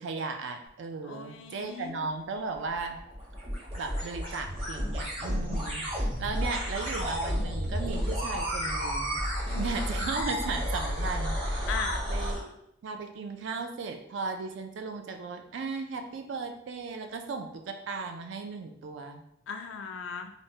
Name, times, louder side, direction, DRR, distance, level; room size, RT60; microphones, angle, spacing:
voice 1, 0.0-3.0 3.8-9.2 9.6-11.7 12.1-12.5 12.8-19.2, right 4 dB, 65° right, 5 dB, 0.4 m, -36 dB
voice 2, 1.0-2.0 9.5-9.8 11.7-12.0 19.5-20.3, left 6 dB, 70° left, 6 dB, 0.3 m, -37 dB
sound 1, 2.5-12.4, equal, 25° right, 0.7 m, -31 dB
3.3 x 2.1 x 2.7 m, 0.77 s
head